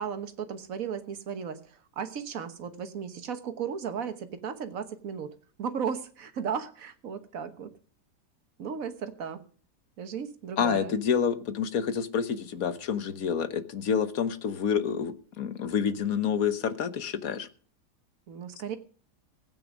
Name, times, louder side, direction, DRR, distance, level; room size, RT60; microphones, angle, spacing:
voice 1, 0.0-1.6 2.0-5.3 5.6-7.7 8.6-9.4 10.0-10.9 18.3-18.8, right 7 dB, 55° right, 9 dB, 1.6 m, -35 dB
voice 2, 10.6-17.5, left 7 dB, 60° left, 12 dB, 1.5 m, -28 dB
16.0 x 9.1 x 6.2 m, 0.43 s
omnidirectional pair, 1.8 m